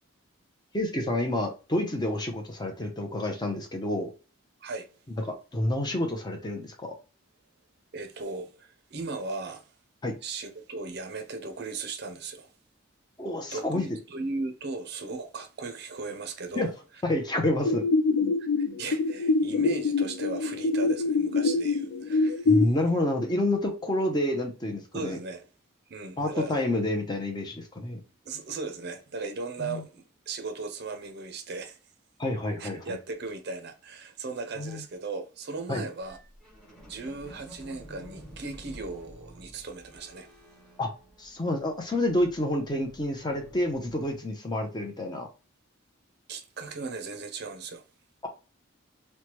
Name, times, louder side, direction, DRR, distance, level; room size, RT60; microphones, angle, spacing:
voice 1, 0.7-4.1 5.2-6.9 10.0-10.1 13.2-13.8 16.5-16.7 17.0-17.8 22.5-25.2 26.2-28.0 29.6-29.8 32.2-33.0 34.6-34.8 35.7-35.8 40.8-40.9 41.2-45.3, left 1 dB, 20° left, 0.5 m, -29 dB
voice 2, 7.9-9.7 10.2-12.5 13.5-16.7 17.6-17.7 18.4-22.5 24.9-25.5 25.9-26.6 28.2-31.8 32.6-36.2 36.8-40.3 46.3-47.8, right 3 dB, 50° right, 0.5 m, -37 dB
sound 1, 17.6-22.6, left 3 dB, 75° left, 0.3 m, -25 dB
sound 2, 36.0-41.6 41.9-44.2, equal, 5° left, 1.0 m, -50 dB
3.1 x 2.1 x 2.9 m
head